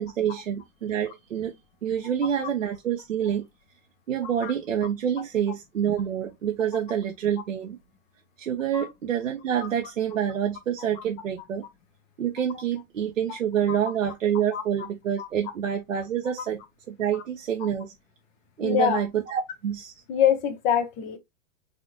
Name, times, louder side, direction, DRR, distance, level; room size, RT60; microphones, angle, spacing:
voice 1, 0.0-1.5 1.8-3.5 4.1-7.8 8.4-11.7 12.2-16.6 16.9-17.9 18.6-19.9, right 9 dB, 85° right, 0.7 m, -27 dB
voice 2, 14.5-14.9 15.2-15.3 17.1-17.2 18.6-19.0 20.1-21.2, left 8 dB, 20° left, 0.3 m, -25 dB
4.2 x 2.6 x 2.9 m
hypercardioid pair, 105°, 38 cm